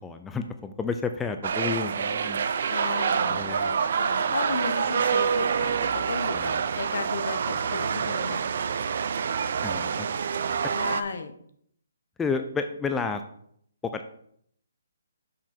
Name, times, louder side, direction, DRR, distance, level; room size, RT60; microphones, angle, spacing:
voice 1, 0.0-2.5 3.3-3.7 6.3-6.6 9.6-10.1 12.2-13.2 13.8-14.1, left 5 dB, 10° left, 7 dB, 0.4 m, -31 dB
sound 1, 1.4-11.0, right 6 dB, 55° right, 0.5 m, -27 dB
voice 2, 2.7-8.4 10.7-11.3, left 4 dB, 65° left, 8 dB, 1.0 m, -34 dB
6.1 x 6.0 x 4.4 m, 0.67 s
hypercardioid pair, 155°, 0 cm